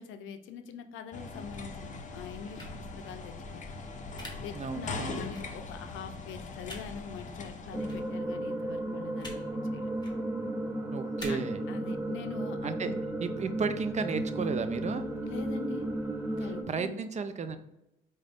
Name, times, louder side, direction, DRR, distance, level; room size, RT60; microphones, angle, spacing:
voice 1, 0.0-3.6 4.4-9.9 11.3-12.9 15.2-15.9 16.3-17.0, left 6 dB, 85° left, 8 dB, 0.5 m, -43 dB
sound 1, 1.1-8.1, left 3 dB, 40° left, 0.6 m, -41 dB
sound 2, 2.6-2.7 4.2-4.3 5.3-5.4 6.6-6.8 7.9-8.0 9.2-9.4 9.9-10.1 11.2-11.3, left 1 dB, 20° left, 1.2 m, -43 dB
voice 2, 4.5-5.3 10.9-11.6 12.6-12.9 13.2-15.1 16.4-17.6, right 5 dB, 35° right, 9 dB, 0.4 m, -34 dB
sound 3, 7.7-16.6, right 1 dB, 15° right, 0.8 m, -34 dB
4.8 x 2.2 x 3.4 m, 0.89 s
cardioid pair, 90°, 20 cm